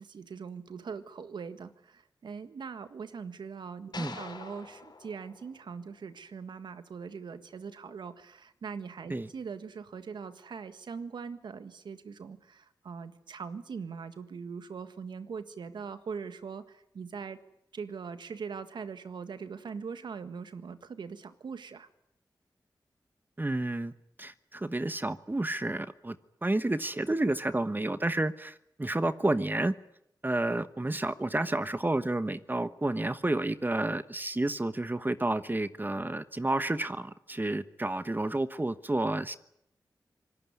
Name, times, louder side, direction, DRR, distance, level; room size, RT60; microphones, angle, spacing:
voice 1, 0.0-17.4 17.7-21.9, right 5 dB, 90° right, 11 dB, 1.7 m, -41 dB
sound 1, 3.9-6.3, left 4 dB, 70° left, 5.2 m, -46 dB
voice 2, 23.4-23.9 24.2-26.1 26.4-29.7 30.2-39.4, right 2 dB, 25° right, 13 dB, 1.2 m, -30 dB
25.5 x 19.0 x 9.8 m, 0.78 s
cardioid pair, 50°, 8 cm